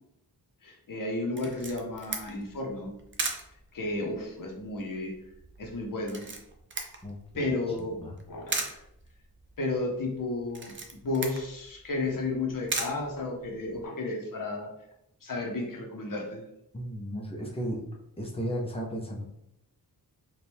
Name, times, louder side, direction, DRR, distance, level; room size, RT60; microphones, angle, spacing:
voice 1, 0.6-3.0 3.7-5.1 5.6-6.3 7.3-8.0 8.3-8.8 9.6-10.7 11.0-14.7 15.2-16.4, left 2 dB, 55° left, 1 dB, 0.9 m, -32 dB
Camera, 1.4-13.8, right 3 dB, 30° right, 0.5 m, -39 dB
voice 2, 7.0-7.5 7.8-8.2 16.7-17.8 18.2-19.2, equal, 15° left, -1 dB, 0.7 m, -35 dB
4.4 x 2.5 x 3.4 m, 0.79 s
wide cardioid pair, 155°, 39 cm